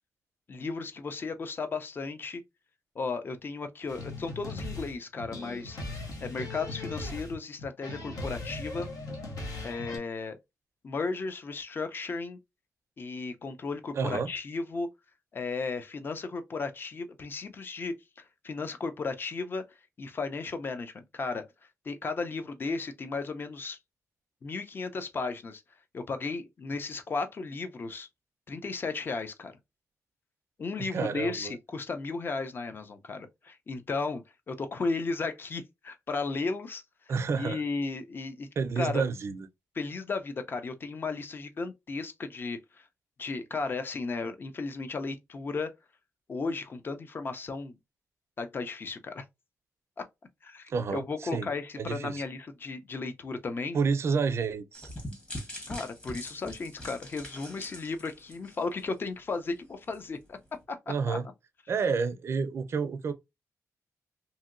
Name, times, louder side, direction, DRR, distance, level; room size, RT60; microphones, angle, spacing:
voice 1, 0.5-2.4 3.0-8.9 9.6-10.4 10.8-12.4 13.0-14.9 15.3-19.6 20.0-21.4 21.8-23.8 24.4-25.6 25.9-28.1 28.5-29.6 30.6-36.8 37.3-38.5 38.8-39.0 39.8-42.9 43.2-45.7 46.3-47.8 48.4-49.2 50.0-50.1 50.4-53.8 55.7-60.4 60.7-60.8 61.1-61.2, left 4 dB, 40° left, 0.5 m, -35 dB
sound 1, 3.9-10.0, left 2 dB, 90° left, 0.9 m, -39 dB
voice 2, 13.9-14.3 30.8-31.6 37.1-37.6 38.6-39.5 50.7-51.5 51.8-52.2 53.7-54.9 60.9-61.2 61.7-63.1, right 5 dB, 50° right, 0.4 m, -29 dB
sound 2, 54.7-59.0 59.3-59.5 59.9-60.0, left 1 dB, 20° left, 1.1 m, -43 dB
2.9 x 2.7 x 2.4 m
wide cardioid pair, 135°, 6 cm